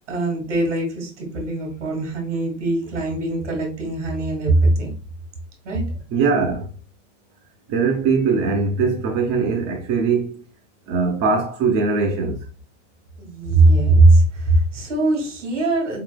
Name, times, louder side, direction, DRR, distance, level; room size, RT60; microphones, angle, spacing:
voice 1, 0.1-4.9 5.6-6.0 13.2-16.0, right 2 dB, 65° right, 2.1 m, -20 dB
voice 2, 6.1-6.7 7.7-10.4 10.9-12.5, right 4 dB, 40° right, 0.9 m, -21 dB
4.7 x 3.9 x 2.2 m
figure-of-eight pair, 80°, 38 cm